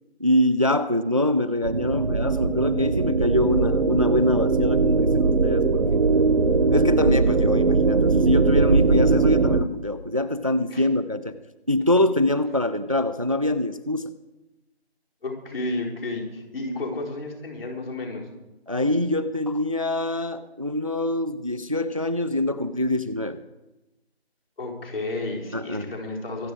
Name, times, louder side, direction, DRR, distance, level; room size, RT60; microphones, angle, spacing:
voice 1, 0.2-6.0 6.7-11.4 11.7-14.1 18.7-23.4 25.5-25.9, left 1 dB, 35° right, 13 dB, 0.4 m, -24 dB
sound 1, 1.6-9.6, right 4 dB, 50° right, 1.0 m, -20 dB
voice 2, 15.2-18.3 24.6-26.5, left 2 dB, 60° left, -2 dB, 4.4 m, -32 dB
24.5 x 8.6 x 4.7 m, 1.0 s
figure-of-eight pair, 165°, 33 cm